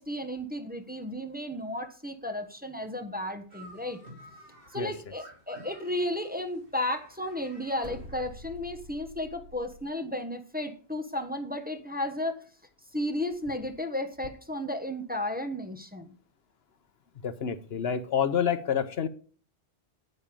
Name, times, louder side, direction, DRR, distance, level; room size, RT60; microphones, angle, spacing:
voice 1, 0.0-4.0 4.7-12.4 12.9-16.1, left 1 dB, 10° right, 5 dB, 1.1 m, -33 dB
sound 1, 3.5-8.7, right 1 dB, 55° right, 2.8 m, -53 dB
sound 2, 7.8-9.9, equal, 70° right, 2.2 m, -46 dB
voice 2, 17.2-19.1, left 8 dB, 70° left, 12 dB, 1.0 m, -28 dB
9.6 x 8.8 x 5.3 m, 0.41 s
omnidirectional pair, 1.1 m